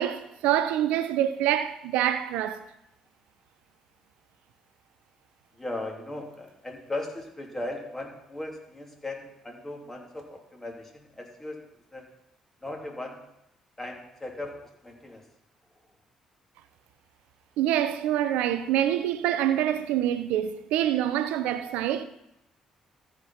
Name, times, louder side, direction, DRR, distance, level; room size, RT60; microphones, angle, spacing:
voice 1, 0.0-2.6 17.6-22.0, right 11 dB, 85° right, 0.6 m, -26 dB
voice 2, 5.6-11.6 11.9-12.0 12.6-13.2 13.8-15.3, left 2 dB, 15° left, 2.8 m, -37 dB
14.0 x 4.7 x 5.7 m
supercardioid pair, 60°, 2 cm